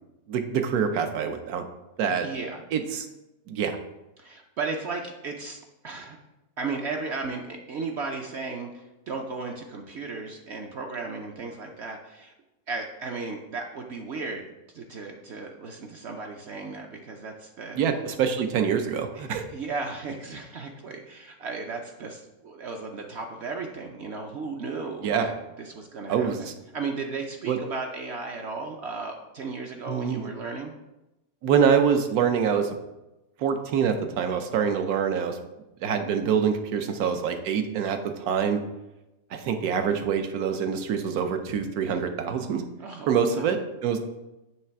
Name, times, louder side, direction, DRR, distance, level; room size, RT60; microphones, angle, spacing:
voice 1, 0.3-1.6 2.0-2.3 2.7-3.1 3.5-3.8 17.7-19.4 25.0-25.3 26.1-26.5 27.5-27.6 29.9-30.3 31.4-32.7 33.4-35.4 35.8-38.6 39.3-42.6 43.1-44.0, right 7 dB, 80° right, 7 dB, 1.2 m, -25 dB
voice 2, 2.2-2.6 4.2-5.6 5.8-6.2 6.6-12.3 12.7-14.5 14.7-17.8 19.1-25.3 25.6-30.7 42.8-43.5, right 4 dB, 60° right, 2 dB, 0.7 m, -35 dB
7.5 x 3.3 x 5.7 m, 0.98 s
omnidirectional pair, 1.6 m